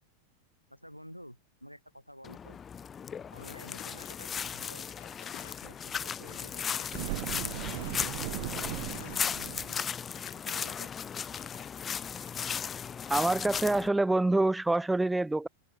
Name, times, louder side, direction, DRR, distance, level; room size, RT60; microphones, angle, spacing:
voice 1, 0.7-2.6 3.3-4.9 5.4-7.9 8.3-10.0 10.3-10.9, equal, 90° left, 6.3 m, -52 dB
sound 1, 2.2-13.9, left 7 dB, 20° left, 3.1 m, -36 dB
sound 2, 3.4-11.7 12.3-12.4, left 38 dB, 45° left, 3.6 m, -52 dB
sound 3, 6.9-10.0, right 26 dB, 50° right, 1.0 m, -38 dB
voice 2, 13.1-15.5, right 2 dB, 5° right, 0.9 m, -26 dB
open air
figure-of-eight pair, 90°, 0 cm